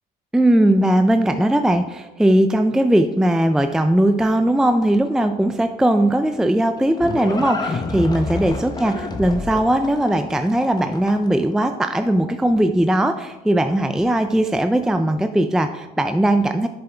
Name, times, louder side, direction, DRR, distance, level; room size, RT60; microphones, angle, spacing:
voice 1, 0.3-16.7, right 1 dB, 5° right, 8 dB, 0.3 m, -19 dB
Livestock farm animals working animals, 6.4-11.4, left 3 dB, 25° left, 0.9 m, -29 dB
7.9 x 6.8 x 3.4 m, 1.1 s
cardioid pair, 110°, 17 cm